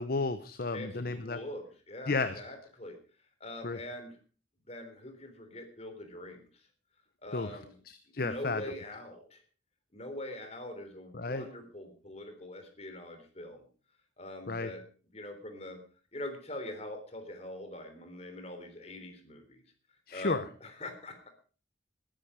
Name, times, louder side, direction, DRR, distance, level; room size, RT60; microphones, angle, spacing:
voice 1, 0.0-1.4 2.1-2.3 3.6-3.8 7.3-7.5 7.9-8.6 11.1-11.4 14.5-14.7 20.1-20.4, left 3 dB, 50° left, 12 dB, 0.8 m, -32 dB
voice 2, 0.7-3.0 3.4-4.2 4.7-6.7 7.2-7.8 8.1-9.4 9.9-13.7 14.2-14.8 15.1-15.8 16.1-19.6 20.1-21.3, left 1 dB, 35° left, 6 dB, 3.6 m, -43 dB
20.0 x 10.5 x 5.0 m, 0.39 s
head